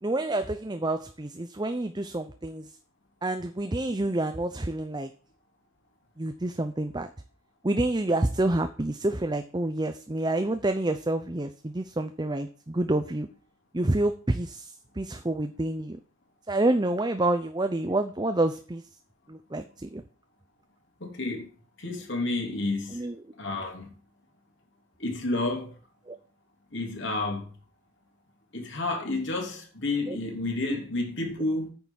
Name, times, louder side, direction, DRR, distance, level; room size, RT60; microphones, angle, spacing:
voice 1, 0.0-2.7 3.2-5.1 6.2-7.1 7.6-13.3 13.7-16.0 16.5-18.8 19.3-20.0 22.9-23.2 26.1-26.2 30.1-30.2 30.7-30.8, right 2 dB, 20° right, 0.6 m, -28 dB
voice 2, 21.0-21.5 21.8-23.0 23.4-23.9 25.0-25.7 26.7-27.5 28.5-31.7, left 2 dB, 60° left, 3.2 m, -30 dB
9.6 x 6.8 x 7.4 m
head